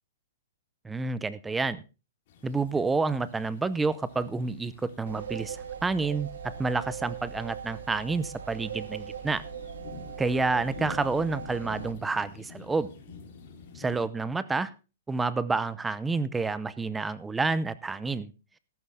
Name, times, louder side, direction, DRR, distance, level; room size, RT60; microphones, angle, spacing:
voice 1, 0.8-1.8 2.4-6.3 6.6-9.4 10.2-12.9 13.7-14.7 15.1-18.3, right 3 dB, 10° right, 16 dB, 0.7 m, -29 dB
sound 1, 2.3-14.1, left 4 dB, 50° left, 3.8 m, -48 dB
sound 2, 5.1-11.9, right 8 dB, 80° right, 1.1 m, -40 dB
14.0 x 12.0 x 3.6 m, 0.31 s
hypercardioid pair, 155°, 0 cm